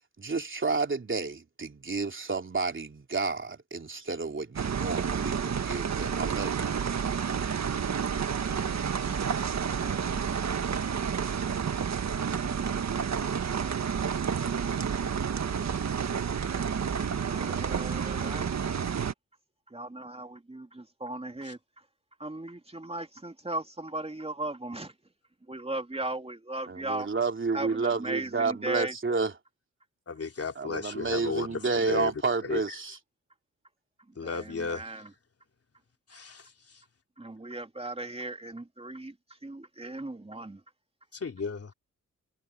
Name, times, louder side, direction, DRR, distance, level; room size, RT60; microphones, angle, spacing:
voice 1, 0.2-6.8 26.7-29.3 30.6-33.0, right 4 dB, 40° right, 3.3 m, -30 dB
sound 1, 4.6-19.1, right 7 dB, 55° right, 1.7 m, -30 dB
voice 2, 17.2-18.5 19.7-21.6 22.2-24.9 25.5-27.1 27.5-28.9 34.2-35.1 37.2-39.1 39.4-40.6, right 2 dB, 20° right, 2.9 m, -37 dB
voice 3, 30.1-31.6 31.9-32.1 32.5-32.6 34.2-34.8 36.1-36.5 41.1-41.7, left 4 dB, 45° left, 3.3 m, -34 dB
cardioid pair, 55°, 32 cm